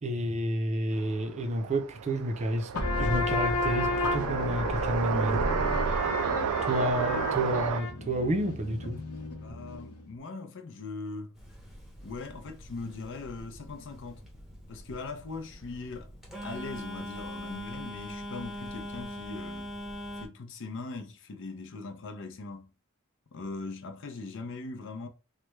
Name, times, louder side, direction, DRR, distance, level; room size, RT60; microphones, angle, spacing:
voice 1, 0.0-2.7 3.0-5.4 6.6-9.0, right 1 dB, 30° right, 0.5 m, -30 dB
sound 1, 1.0-7.8, right 7 dB, 90° right, 0.3 m, -32 dB
sound 2, 2.7-10.0, left 2 dB, 85° left, 0.8 m, -32 dB
voice 2, 9.4-11.3 12.0-14.2 14.7-16.1 16.4-19.7 20.2-22.7 23.3-25.1, left 3 dB, 60° left, 0.6 m, -40 dB
Telephone, 11.3-20.3, equal, ahead, 0.7 m, -42 dB
3.2 x 2.2 x 3.1 m
head